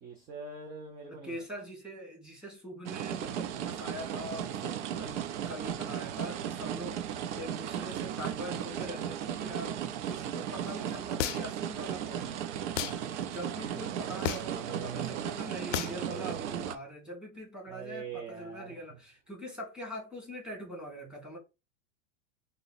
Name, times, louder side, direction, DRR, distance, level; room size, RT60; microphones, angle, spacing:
voice 1, 0.0-1.3 17.7-18.8, right 4 dB, 25° right, 0.5 m, -43 dB
voice 2, 1.1-9.7 10.1-12.3 13.3-21.4, equal, ahead, 1.4 m, -43 dB
sound 1, 2.9-16.8, right 9 dB, 65° right, 0.7 m, -36 dB
sound 2, 11.2-11.6 12.8-13.0 14.2-14.6 15.7-16.0, left 11 dB, 75° left, 0.5 m, -32 dB
3.8 x 2.2 x 4.0 m
supercardioid pair, 140°, 37 cm